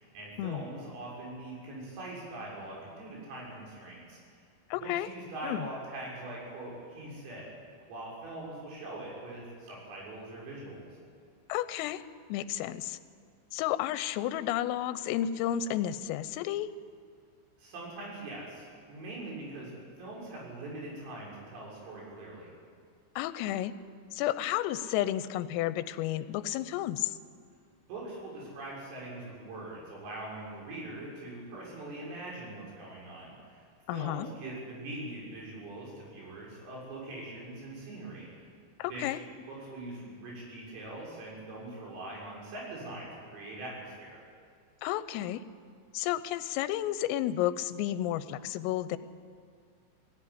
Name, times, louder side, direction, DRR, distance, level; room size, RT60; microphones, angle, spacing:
voice 1, 0.0-4.2 4.7-7.5 7.9-10.9 17.6-22.5 27.9-38.5 38.9-39.2 39.5-44.2, right 2 dB, 85° right, -4 dB, 9.1 m, -42 dB
voice 2, 4.7-5.1 5.4-5.6 11.5-12.0 12.3-13.0 13.5-16.7 23.2-23.7 24.1-27.2 33.9-34.3 38.8-39.2 44.8-45.4 45.9-49.0, left 12 dB, 90° left, 13 dB, 3.4 m, -32 dB
21.0 x 17.5 x 10.0 m, 2.2 s
omnidirectional pair, 5.8 m